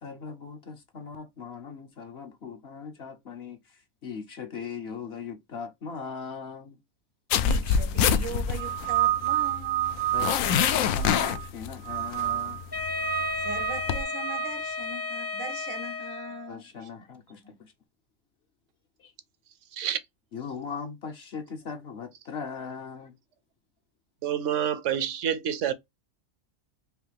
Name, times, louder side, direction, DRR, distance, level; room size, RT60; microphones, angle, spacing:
voice 1, 0.0-6.8 10.1-12.6 16.5-17.7 19.0-19.1 20.3-23.2, left 6 dB, 55° left, 0.9 m, -39 dB
sound 1, 7.3-14.0, left 7 dB, 80° left, 1.0 m, -26 dB
voice 2, 7.4-10.1 13.4-16.9 17.4-17.5, right 3 dB, 85° right, 1.4 m, -40 dB
sound 2, 8.6-11.5 11.8-12.6 13.0-14.5, right 14 dB, 40° right, 0.6 m, -29 dB
Wind instrument woodwind instrument, 12.7-16.6, left 3 dB, 25° left, 0.6 m, -33 dB
voice 3, 24.2-25.7, right 9 dB, 70° right, 0.9 m, -28 dB
4.7 x 2.7 x 3.3 m
omnidirectional pair, 1.4 m